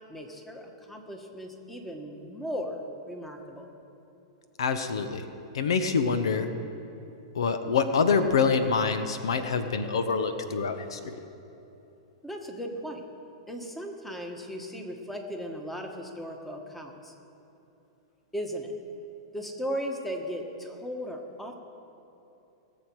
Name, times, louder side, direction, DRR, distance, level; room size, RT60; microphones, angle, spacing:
voice 1, 0.1-3.7 12.2-13.0 13.5-17.1 18.3-18.7 19.3-21.6, equal, 5° left, 3 dB, 1.5 m, -37 dB
voice 2, 4.6-5.2 5.5-6.5 7.3-11.0, left 5 dB, 85° left, 9 dB, 0.9 m, -26 dB
20.5 x 7.2 x 4.8 m, 2.9 s
hypercardioid pair, 125°, 3 cm